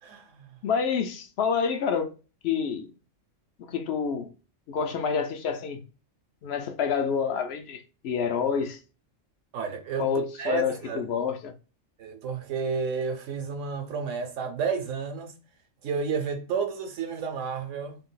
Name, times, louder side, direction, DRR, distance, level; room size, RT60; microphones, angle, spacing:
voice 1, 0.0-0.6 9.5-10.1 10.4-11.1 12.0-15.3 15.8-18.0, right 5 dB, 70° right, 1.0 m, -31 dB
voice 2, 0.6-2.1 2.4-2.9 3.6-4.3 4.7-5.8 6.4-8.8 10.0-11.5, left 6 dB, 65° left, 0.7 m, -28 dB
2.7 x 2.3 x 3.7 m
omnidirectional pair, 1.4 m